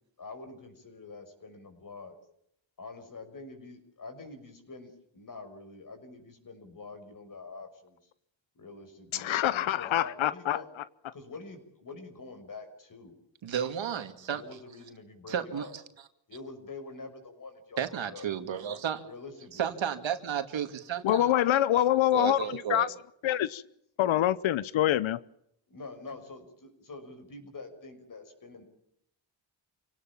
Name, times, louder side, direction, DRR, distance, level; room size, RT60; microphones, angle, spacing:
voice 1, 0.2-2.2 2.8-8.0 8.6-10.7 11.1-13.2 14.3-15.7 16.3-18.3 19.0-19.7 25.7-28.6, left 3 dB, 45° left, 6.2 m, -46 dB
voice 2, 9.1-10.6 21.0-22.9 23.2-23.6 24.0-25.2, left 12 dB, 90° left, 0.8 m, -25 dB
voice 3, 13.4-14.4 15.3-15.7 17.8-19.0 19.5-21.3 21.7-21.8 22.1-22.9, right 8 dB, 75° right, 2.5 m, -32 dB
27.5 x 18.0 x 7.3 m
cardioid pair, 105°, 46 cm